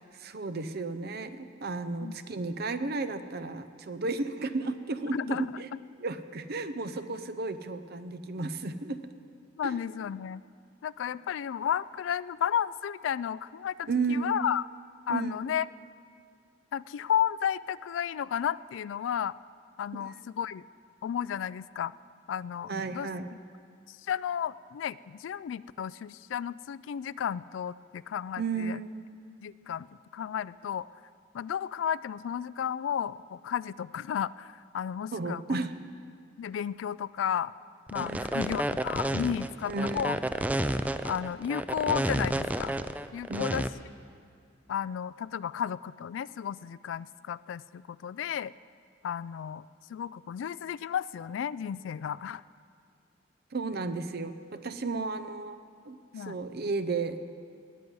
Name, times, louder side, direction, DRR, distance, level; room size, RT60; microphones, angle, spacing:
voice 1, 0.0-5.7 6.0-9.1 9.6-9.7 13.9-14.3 15.1-15.4 19.9-20.1 22.7-23.3 28.4-28.9 35.1-35.7 38.0-38.3 39.6-40.0 43.3-43.5 53.5-55.6 55.9-57.2, right 3 dB, 55° right, 11 dB, 0.7 m, -33 dB
voice 2, 5.1-5.4 9.6-10.4 10.8-14.6 15.1-15.7 16.7-19.3 19.8-20.6 21.0-21.9 22.3-23.1 23.9-28.8 29.4-29.9 30.1-30.9 31.3-35.7 36.4-37.5 37.9-40.2 41.0-42.8 43.1-43.7 44.7-48.5 49.0-49.6 49.9-52.4 56.1-56.4, left 8 dB, 80° left, 19 dB, 0.3 m, -33 dB
sound 1, 37.9-43.7, right 1 dB, 10° right, 0.4 m, -30 dB
19.5 x 9.6 x 5.4 m, 2.3 s
head